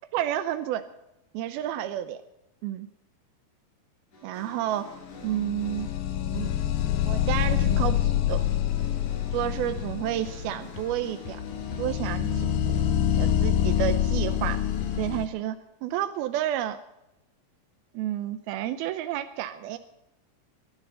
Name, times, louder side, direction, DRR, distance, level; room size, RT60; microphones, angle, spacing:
voice 1, 0.1-0.9 1.3-2.2 2.6-2.9 4.2-5.9 6.3-6.6 7.0-8.4 9.3-11.4 11.8-12.7 13.2-14.7 15.0-16.8 17.9-19.8, right 12 dB, 80° right, 9 dB, 2.5 m, -30 dB
sound 1, 4.1-15.2, left 4 dB, 50° left, 5.5 m, -43 dB
sound 2, 5.2-15.3, left 11 dB, 75° left, 2.4 m, -26 dB
22.0 x 12.0 x 5.4 m, 0.89 s
omnidirectional pair, 4.6 m